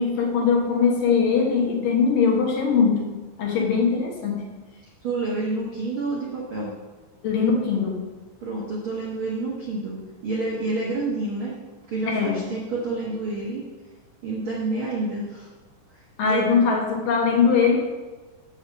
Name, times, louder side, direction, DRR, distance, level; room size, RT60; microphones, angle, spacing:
voice 1, 0.0-4.4 7.2-8.0 12.1-12.4 16.2-17.8, left 5 dB, 65° left, 0 dB, 2.5 m, -21 dB
voice 2, 5.0-6.7 8.4-11.5 11.9-13.6 14.2-15.5 16.2-16.4, right 3 dB, 65° right, -4 dB, 1.2 m, -28 dB
7.3 x 5.7 x 7.4 m, 1.2 s
omnidirectional pair, 4.6 m